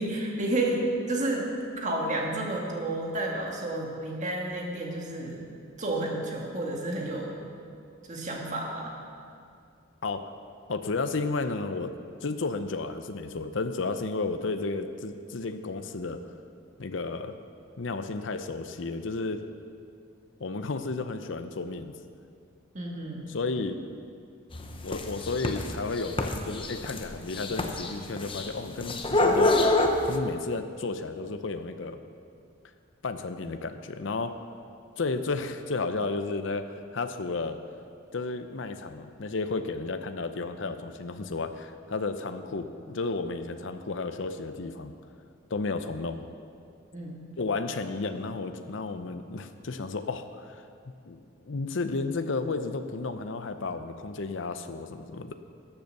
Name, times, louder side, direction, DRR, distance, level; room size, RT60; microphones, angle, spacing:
voice 1, 0.0-1.5 1.8-5.4 5.8-7.4 8.1-8.9 22.7-23.3 46.9-47.3, right 2 dB, 35° right, -1 dB, 1.9 m, -31 dB
voice 2, 10.7-16.2 16.8-17.3 17.8-19.4 20.4-21.9 23.3-23.8 24.8-29.7 30.1-32.0 33.0-34.4 35.0-37.6 38.1-44.9 45.5-46.2 47.4-50.6 51.1-51.2 51.4-55.3, left 3 dB, 65° left, 9 dB, 0.6 m, -32 dB
sound 1, 24.5-30.2, left 2 dB, 25° left, 0.8 m, -27 dB
14.0 x 8.1 x 6.6 m, 2.4 s
head